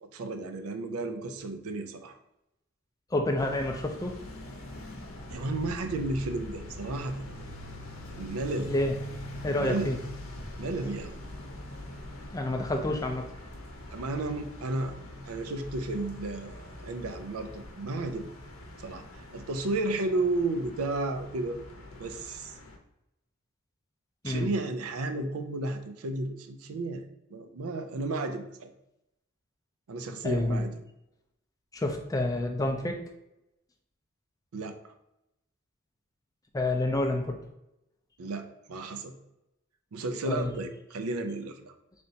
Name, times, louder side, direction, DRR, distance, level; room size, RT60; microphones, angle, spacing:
voice 1, 0.0-2.1 5.3-7.2 8.2-8.7 9.6-9.9 10.6-11.2 13.9-14.9 15.3-18.3 18.8-19.0 19.3-21.6 22.0-22.5 24.2-27.0 27.3-28.7 29.9-30.8 34.5-34.8 38.2-39.1 39.9-41.7, right 2 dB, 90° right, 8 dB, 0.5 m, -33 dB
voice 2, 3.1-4.2 8.7-9.0 9.4-10.0 12.3-13.3 24.2-24.5 30.2-30.6 31.7-33.0 36.5-37.4 40.3-40.5, left 1 dB, 15° left, 3 dB, 0.4 m, -28 dB
sound 1, 3.4-22.8, left 1 dB, 75° left, 0.7 m, -43 dB
4.0 x 3.4 x 2.7 m, 0.88 s
head